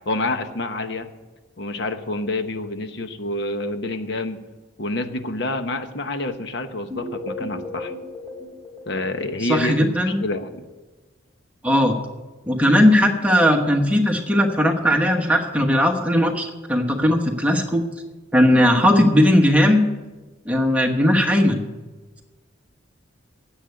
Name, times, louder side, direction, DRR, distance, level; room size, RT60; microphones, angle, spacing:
voice 1, 0.1-1.1 1.6-4.4 4.8-7.9 8.9-10.7, left 2 dB, 60° left, 8 dB, 1.0 m, -28 dB
sound 1, 6.9-9.8, left 2 dB, 10° left, 3.4 m, -35 dB
voice 2, 9.4-10.2 11.6-12.0 12.5-17.8 18.3-19.8 20.4-21.6, equal, 5° right, 3 dB, 1.2 m, -18 dB
10.0 x 8.2 x 9.4 m, 1.2 s
head